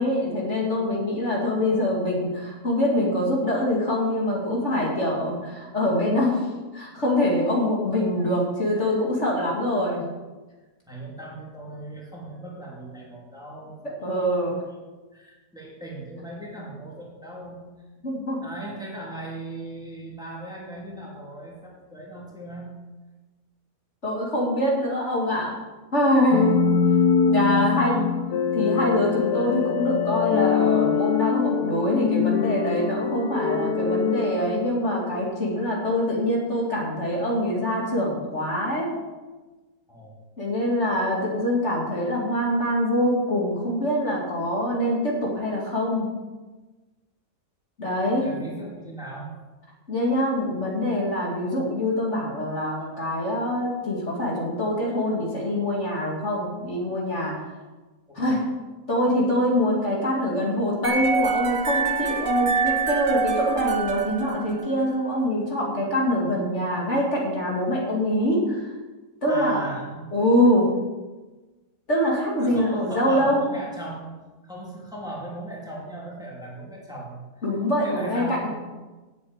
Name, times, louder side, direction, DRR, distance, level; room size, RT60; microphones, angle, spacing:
voice 1, 0.0-6.5 6.7-10.0 13.8-14.6 18.0-18.4 24.0-25.5 25.9-26.6 27.3-28.1 28.5-38.9 40.4-46.1 47.8-48.3 49.9-57.4 58.1-58.4 58.9-68.7 69.2-69.7 70.1-70.7 71.9-73.4 77.4-78.5, left 1 dB, 45° left, -3 dB, 2.7 m, -24 dB
voice 2, 10.9-14.5 15.1-17.6 18.4-22.7 27.5-28.2 39.9-40.1 48.2-49.4 58.1-58.4 69.2-70.1 72.4-74.2 74.4-77.4 77.8-78.5, right 1 dB, ahead, -5 dB, 3.1 m, -38 dB
sound 1, 26.3-35.3, left 6 dB, 85° left, 1.4 m, -23 dB
sound 2, 60.8-65.0, right 6 dB, 55° right, 1.8 m, -25 dB
9.7 x 7.6 x 8.9 m, 1.2 s
omnidirectional pair, 1.7 m